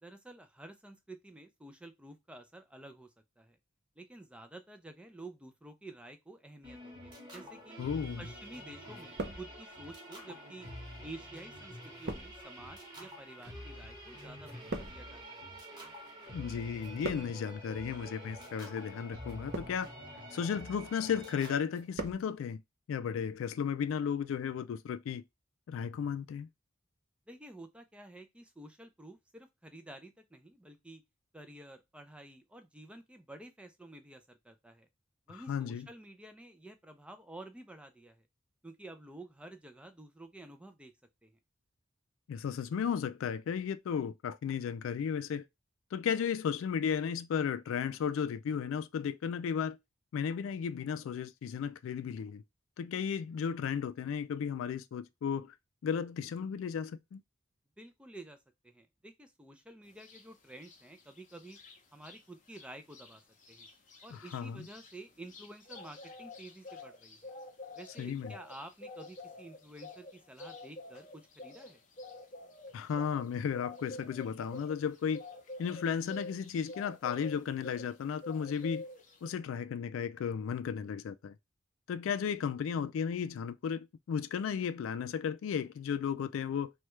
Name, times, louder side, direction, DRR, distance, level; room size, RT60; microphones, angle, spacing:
voice 1, 0.0-3.1 3.4-3.6 4.0-7.8 8.2-10.7 11.0-15.5 27.3-31.0 31.3-34.9 35.3-38.2 38.6-40.9 41.2-41.4 57.8-58.4 58.6-61.6 61.9-63.2 63.5-63.7 64.0-67.3 67.7-71.8, right 2 dB, 5° right, 0.4 m, -51 dB
sound 1, 6.6-21.6, equal, 20° right, 1.1 m, -48 dB
voice 2, 7.8-8.2 16.3-19.9 20.3-22.6 22.9-25.2 25.7-26.5 35.3-35.9 42.3-45.4 45.9-49.8 50.1-52.4 52.8-55.5 55.8-57.2 64.1-64.7 68.0-68.3 72.7-75.2 75.6-78.9 79.2-81.4 81.9-86.7, left 7 dB, 75° left, 0.3 m, -34 dB
sound 2, 8.0-8.6 8.9-9.9 10.7-16.3 16.6-17.6 18.3-18.6 19.2-20.0 20.5-20.9 21.3-22.3 22.5-22.6, right 2 dB, 55° right, 0.6 m, -43 dB
sound 3, 60.0-60.2 60.6-62.2 62.5-62.7 62.9-78.0 78.2-79.3, left 2 dB, 40° left, 0.7 m, -48 dB
3.2 x 2.3 x 3.0 m
head